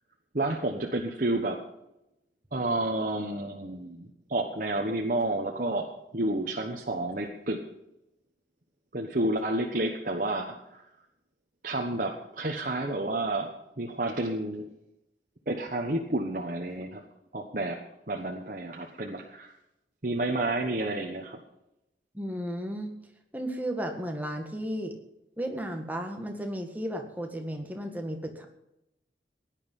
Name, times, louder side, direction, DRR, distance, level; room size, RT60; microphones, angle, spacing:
voice 1, 0.3-1.6 2.5-5.9 6.1-7.6 8.9-10.8 11.6-14.7 15.5-17.0 17.3-17.8 18.1-19.5 20.0-21.4, right 2 dB, 50° right, 1 dB, 1.2 m, -30 dB
voice 2, 22.1-22.9 23.3-24.9 25.4-28.5, equal, 10° right, 3 dB, 1.8 m, -34 dB
17.0 x 10.5 x 5.4 m, 0.87 s
head